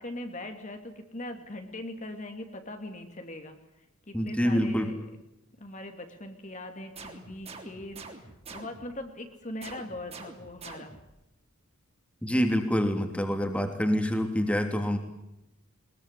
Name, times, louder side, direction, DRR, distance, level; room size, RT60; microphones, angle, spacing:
voice 1, 0.0-3.6 4.1-5.0 5.6-10.9, left 1 dB, 35° left, 5 dB, 2.7 m, -41 dB
voice 2, 4.1-4.9 12.2-15.0, equal, 5° left, 5 dB, 3.0 m, -26 dB
sound 1, 6.9-9.0 9.6-11.2, right 4 dB, 30° right, 3.5 m, -46 dB
22.5 x 21.5 x 9.9 m, 0.87 s
head